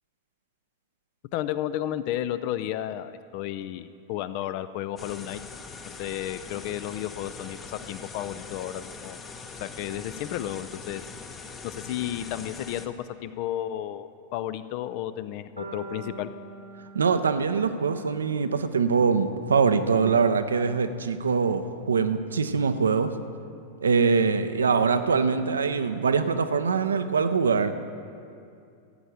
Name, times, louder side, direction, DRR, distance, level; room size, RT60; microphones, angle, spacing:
voice 1, 1.3-5.4 5.8-9.2 9.6-11.1 11.6-13.0 13.2-16.3, left 12 dB, 45° left, 13 dB, 0.5 m, -32 dB
sound 1, 5.0-12.9, left 4 dB, 20° left, 0.8 m, -42 dB
sound 2, 15.6-19.7, right 3 dB, 90° right, 1.4 m, -45 dB
voice 2, 16.9-23.1 23.8-27.7, right 5 dB, 70° right, 10 dB, 0.6 m, -23 dB
15.0 x 8.9 x 4.9 m, 2.4 s
figure-of-eight pair, 90°, 0 cm